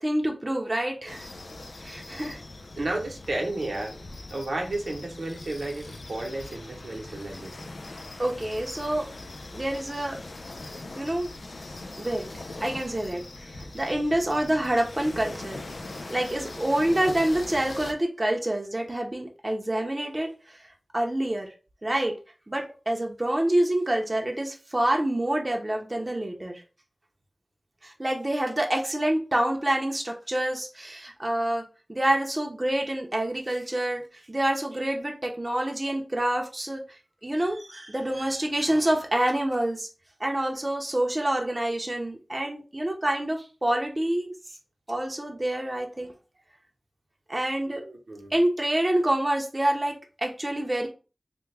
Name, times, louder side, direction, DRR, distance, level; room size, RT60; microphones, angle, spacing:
voice 1, 0.0-1.3 1.8-2.4 8.2-9.1 9.5-10.2 11.0-11.3 12.0-12.3 12.6-15.6 16.1-20.6 20.9-21.5 21.8-22.1 22.5-26.6 27.8-36.8 37.2-39.9 40.2-44.3 44.9-46.1 47.3-47.8 48.3-50.9, right 1 dB, 30° right, 1 dB, 0.7 m, -27 dB
sound 1, 1.1-17.9, left 2 dB, 80° left, 0.4 m, -41 dB
voice 2, 2.8-4.0 4.3-7.7 47.7-48.3, right 2 dB, 80° right, 0 dB, 0.8 m, -33 dB
3.4 x 2.2 x 3.2 m, 0.33 s
wide cardioid pair, 60°, 0 cm